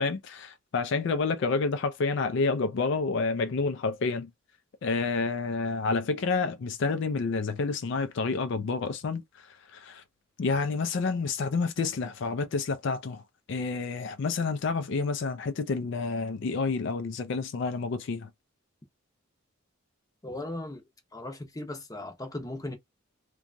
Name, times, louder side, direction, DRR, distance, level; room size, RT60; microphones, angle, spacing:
voice 1, 0.0-4.3 4.8-10.0 10.4-13.2 13.5-18.3, left 4 dB, 60° left, 0.4 m, -29 dB
voice 2, 20.2-20.8 21.1-22.8, left 1 dB, 15° left, 0.7 m, -37 dB
2.8 x 2.2 x 2.5 m
head